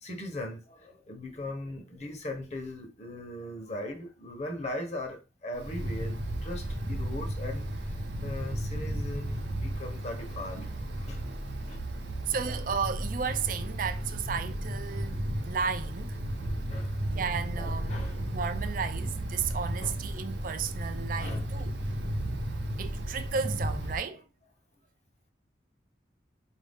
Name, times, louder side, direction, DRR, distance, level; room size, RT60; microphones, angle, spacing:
voice 1, 0.0-11.2 11.7-11.8 12.5-12.6 16.4-17.0 17.5-18.3 19.8-19.9 21.2-21.9 22.7-22.8, left 1 dB, 40° left, 1.0 m, -40 dB
Wind, 5.6-24.0, right 1 dB, 80° right, 0.8 m, -34 dB
voice 2, 12.3-15.2 15.4-16.2 17.1-17.9 18.3-21.7 22.8-24.2, right 6 dB, 50° right, 0.4 m, -33 dB
4.6 x 2.6 x 3.5 m
head